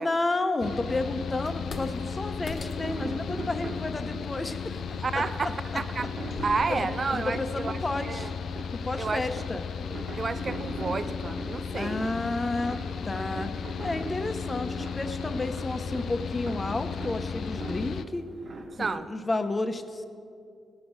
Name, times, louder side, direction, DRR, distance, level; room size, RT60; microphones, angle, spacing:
voice 1, 0.0-4.8 6.7-8.3 8.7-9.6 11.8-13.5 13.8-18.3 18.8-20.0, left 2 dB, 25° left, 8 dB, 0.9 m, -31 dB
Mechanical fan, 0.6-18.0, left 6 dB, 70° left, 0.4 m, -35 dB
sound 1, 0.9-18.9, right 3 dB, 60° right, 1.5 m, -42 dB
sound 2, 1.4-6.6, left 3 dB, 50° left, 1.3 m, -45 dB
voice 2, 5.0-8.3 9.0-9.3 9.9-12.1 18.8-19.1, right 4 dB, 40° right, 12 dB, 0.4 m, -31 dB
17.0 x 6.3 x 6.4 m, 2.4 s
cardioid pair, 85°, 0 cm